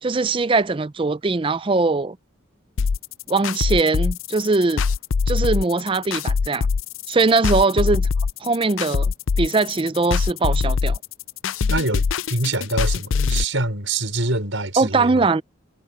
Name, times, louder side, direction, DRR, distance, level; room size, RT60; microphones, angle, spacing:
voice 1, 0.0-2.2 3.3-4.8 5.3-6.7 7.1-8.1 8.4-11.0 14.8-15.4, right 3 dB, 25° right, 0.4 m, -21 dB
sound 1, 2.8-13.4, left 5 dB, 80° left, 0.5 m, -22 dB
voice 2, 11.7-15.3, right 2 dB, 75° right, 5.0 m, -25 dB
head